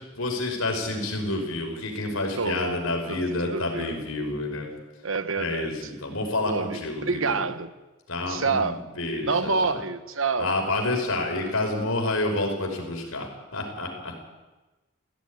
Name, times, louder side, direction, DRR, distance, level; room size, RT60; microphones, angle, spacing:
voice 1, 0.2-4.7 5.3-7.4 8.1-9.8 10.4-14.1, left 2 dB, 80° left, 2 dB, 5.4 m, -29 dB
voice 2, 2.4-2.8 3.1-4.0 5.0-5.9 6.4-7.7 8.3-8.8 9.2-10.5, right 4 dB, 65° right, 11 dB, 1.2 m, -28 dB
17.0 x 16.5 x 9.7 m, 1.2 s
head